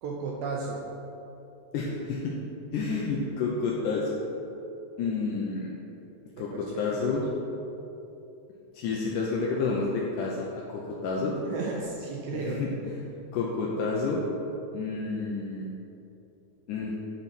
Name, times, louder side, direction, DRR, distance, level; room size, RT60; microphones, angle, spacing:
voice 1, 0.0-0.8 6.4-6.6 7.1-7.2 11.4-12.6, right 4 dB, 85° right, -1 dB, 1.8 m, -34 dB
voice 2, 1.7-2.3 2.7-4.1 5.0-5.7 6.4-7.2 8.7-11.4 12.3-13.0 13.3-14.2 14.7-15.7 16.7-17.0, left 4 dB, 80° left, -3 dB, 2.0 m, -30 dB
8.9 x 4.1 x 5.8 m, 2.9 s
omnidirectional pair, 4.1 m